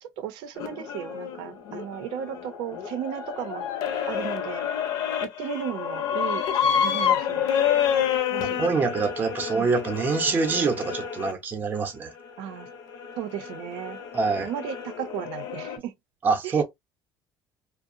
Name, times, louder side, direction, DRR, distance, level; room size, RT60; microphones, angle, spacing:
voice 1, 0.0-4.7 5.2-7.5 8.3-8.6 9.5-9.8 12.4-12.7 13.2-14.0 14.4-15.9 16.4-16.6, right 9 dB, 80° right, 0.6 m, -35 dB
sound 1, 0.6-11.3 12.1-15.8, left 8 dB, 60° left, 0.6 m, -29 dB
voice 2, 8.4-12.1 14.1-14.5 16.2-16.6, right 4 dB, 25° right, 0.6 m, -25 dB
2.7 x 2.0 x 2.5 m
cardioid pair, 170°, 8 cm